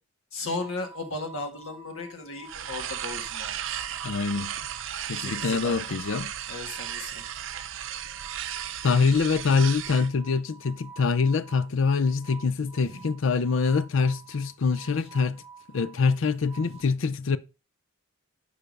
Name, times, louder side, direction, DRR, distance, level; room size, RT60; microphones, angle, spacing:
voice 1, 0.3-3.6 5.1-5.8 6.5-7.2 12.6-13.0 15.0-15.1 16.6-16.8, left 3 dB, 90° left, 1.7 m, -36 dB
sound 1, 0.6-16.8, right 5 dB, 5° right, 2.2 m, -49 dB
sound 2, 2.5-10.1, right 10 dB, 70° right, 0.6 m, -35 dB
voice 2, 4.0-4.5 5.1-6.3 8.8-15.4 15.7-17.4, left 5 dB, 70° left, 0.5 m, -25 dB
6.8 x 5.0 x 5.2 m
head